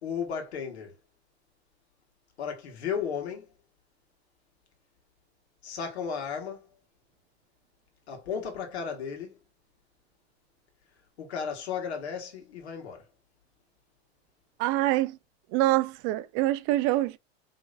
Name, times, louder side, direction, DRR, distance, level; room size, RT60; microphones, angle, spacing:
voice 1, 0.0-1.0 2.4-3.5 5.6-6.7 8.1-9.4 11.2-13.1, left 7 dB, 80° left, 1.8 m, -34 dB
voice 2, 14.6-15.2 15.5-17.2, right 16 dB, 45° right, 0.4 m, -25 dB
5.3 x 3.4 x 2.6 m
hypercardioid pair, 105°, 32 cm